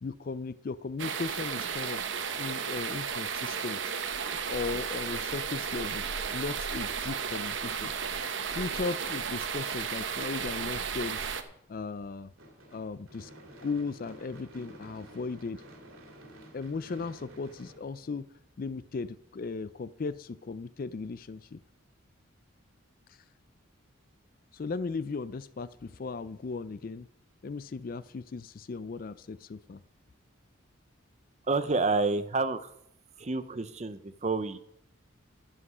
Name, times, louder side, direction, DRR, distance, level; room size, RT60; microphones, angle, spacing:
voice 1, 0.0-2.0 2.4-3.8 4.5-6.0 6.3-7.9 8.5-11.3 11.7-12.3 12.7-13.3 13.6-15.6 16.5-18.3 18.6-21.6 23.1-23.2 24.5-27.1 27.4-29.8, left 4 dB, 45° left, 16 dB, 0.4 m, -36 dB
sound 1, 1.0-11.4, right 6 dB, 60° right, 0.9 m, -34 dB
Gunshot gunfire / Fireworks, 12.4-18.6, right 1 dB, 85° right, 2.5 m, -51 dB
voice 2, 31.5-32.7 33.2-34.6, right 3 dB, 35° right, 12 dB, 0.6 m, -29 dB
11.5 x 7.6 x 6.1 m, 0.74 s
head